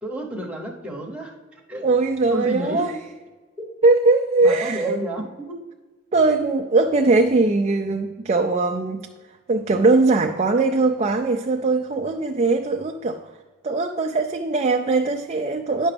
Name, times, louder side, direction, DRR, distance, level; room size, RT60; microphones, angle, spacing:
voice 1, 0.0-1.9 2.3-3.1 4.4-5.6, right 1 dB, 5° right, -2 dB, 0.9 m, -31 dB
voice 2, 1.8-3.0 3.8-5.0 6.1-9.0 9.5-13.2 13.6-15.9, right 3 dB, 30° right, 3 dB, 0.4 m, -20 dB
9.8 x 5.9 x 3.4 m, 1.3 s
head